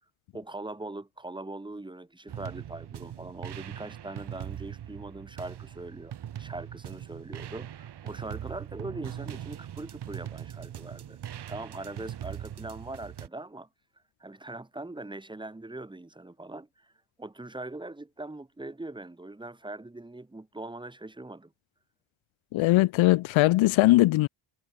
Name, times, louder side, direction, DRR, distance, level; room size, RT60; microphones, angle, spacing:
voice 1, 0.3-13.7 14.2-16.9 17.2-21.5, right 2 dB, 10° right, 6.3 m, -41 dB
sound 1, 2.3-13.3, right 10 dB, 55° right, 4.8 m, -41 dB
voice 2, 22.5-24.3, left 18 dB, 75° left, 0.6 m, -20 dB
cardioid pair, 175°, 48 cm